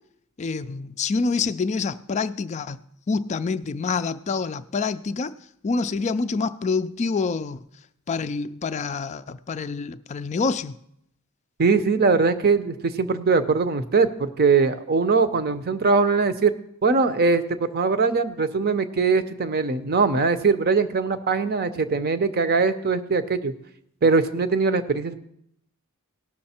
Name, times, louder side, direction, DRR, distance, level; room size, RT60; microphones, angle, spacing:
voice 1, 0.4-2.8 3.1-5.3 5.6-7.6 8.1-10.8, left 4 dB, 30° left, 0.3 m, -27 dB
voice 2, 11.6-16.5 16.8-23.5 24.0-25.1, right 4 dB, 45° right, 0.7 m, -21 dB
17.5 x 6.4 x 4.3 m
head